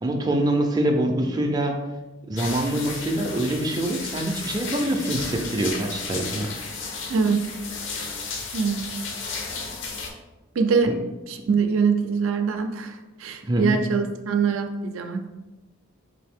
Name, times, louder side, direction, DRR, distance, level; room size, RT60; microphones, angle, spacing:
voice 1, 0.0-1.8 2.3-6.5 10.9-11.0 13.4-13.8, right 1 dB, 20° right, 2 dB, 0.4 m, -25 dB
sound 1, 2.4-10.1, left 4 dB, 65° left, 0.6 m, -33 dB
voice 2, 7.1-7.5 8.5-8.8 10.6-10.9 11.3-15.3, right 5 dB, 85° right, 6 dB, 0.4 m, -23 dB
4.0 x 2.7 x 3.5 m, 1.1 s
head